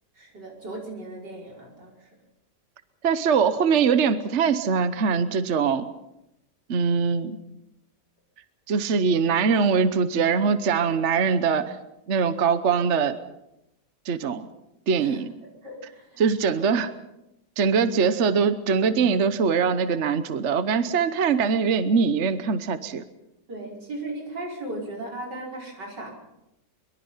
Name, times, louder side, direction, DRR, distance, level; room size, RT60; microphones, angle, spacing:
voice 1, 0.2-2.1 15.0-15.3 15.6-16.2 23.5-26.1, right 2 dB, 80° right, -1 dB, 5.9 m, -37 dB
voice 2, 3.0-5.9 6.7-7.4 8.7-11.8 12.1-13.2 14.1-14.5 14.9-15.3 16.2-16.9 17.6-23.0, right 6 dB, 50° right, 11 dB, 1.1 m, -22 dB
23.5 x 22.5 x 5.7 m, 0.88 s
omnidirectional pair, 1.8 m